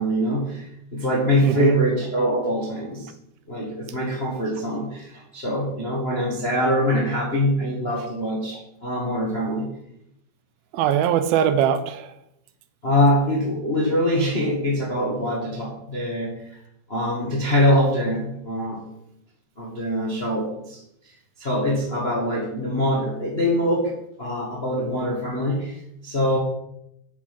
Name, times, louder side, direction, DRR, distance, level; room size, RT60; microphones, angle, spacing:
voice 1, 0.0-3.1 3.5-9.7 12.8-16.6 16.9-18.8 19.6-23.9 24.2-26.4, equal, 40° left, -2 dB, 0.8 m, -24 dB
voice 2, 1.4-1.8 10.7-12.1, right 9 dB, 80° right, 11 dB, 2.5 m, -21 dB
8.3 x 6.5 x 5.9 m, 0.79 s
omnidirectional pair, 4.4 m